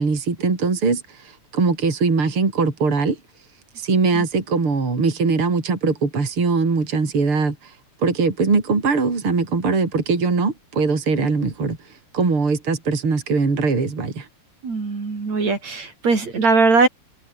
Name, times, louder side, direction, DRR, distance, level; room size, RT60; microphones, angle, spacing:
voice 1, 0.0-3.2 3.8-7.7 8.0-11.8 12.1-14.3, right 4 dB, 45° right, 5.1 m, -21 dB
voice 2, 14.6-16.9, right 4 dB, 60° right, 6.2 m, -20 dB
omnidirectional pair, 3.5 m